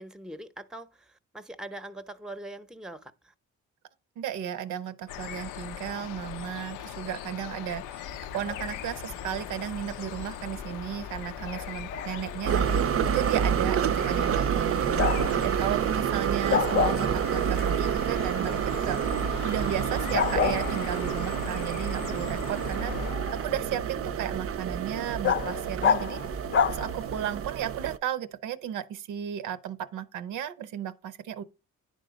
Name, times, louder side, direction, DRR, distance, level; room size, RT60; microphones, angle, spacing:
voice 1, 0.0-3.3, right 1 dB, ahead, 0.7 m, -42 dB
voice 2, 4.2-8.1 8.3-15.1 15.4-19.0 19.4-26.2 26.6-31.4, right 10 dB, 85° right, 0.7 m, -34 dB
sound 1, 5.1-23.1, left 10 dB, 90° left, 0.5 m, -40 dB
Bark, 8.1-27.4, left 6 dB, 40° left, 0.6 m, -33 dB
sound 2, 12.4-28.0, right 8 dB, 50° right, 0.5 m, -28 dB
10.0 x 3.8 x 5.0 m
cardioid pair, 90°, 30 cm